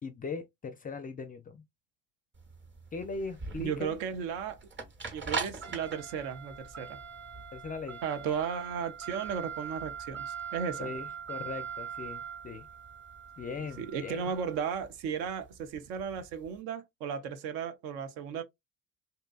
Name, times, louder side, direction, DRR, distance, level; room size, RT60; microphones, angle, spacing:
voice 1, 0.0-1.6 2.9-4.0 7.5-8.0 10.8-12.7 13.4-14.3, left 4 dB, 20° left, 0.4 m, -39 dB
sound 1, 2.4-16.5, right 6 dB, 30° right, 0.9 m, -41 dB
voice 2, 3.6-4.6 5.1-7.0 8.0-10.9 13.8-18.4, right 7 dB, 60° right, 0.6 m, -35 dB
2.7 x 2.2 x 2.2 m
hypercardioid pair, 65°, 40 cm